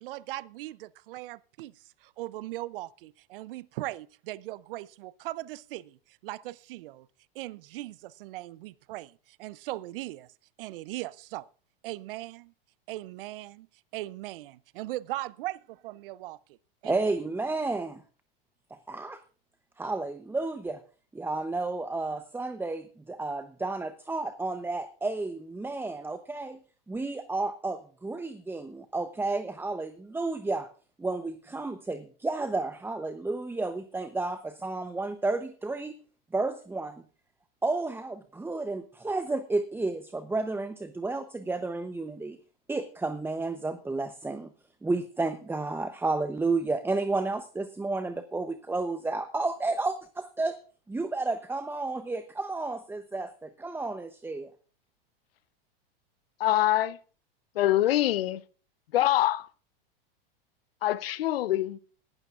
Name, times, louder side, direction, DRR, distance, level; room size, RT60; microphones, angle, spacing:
voice 1, 0.0-7.1 7.3-10.3 10.6-11.5 11.8-12.5 12.9-13.7 13.9-15.6 15.8-16.6 16.8-17.2, right 17 dB, 70° right, 0.6 m, -39 dB
voice 2, 16.8-18.0 18.7-19.2 19.8-20.8 21.1-26.6 26.9-30.7 31.0-36.0 36.3-37.0 37.6-42.4 42.7-44.5 44.8-50.6 50.9-54.5, right 3 dB, 5° right, 0.8 m, -31 dB
voice 3, 56.4-57.0 57.5-58.4 58.9-59.5 60.8-61.8, left 14 dB, 80° left, 0.8 m, -24 dB
19.0 x 12.0 x 2.5 m
hypercardioid pair, 105°, 29 cm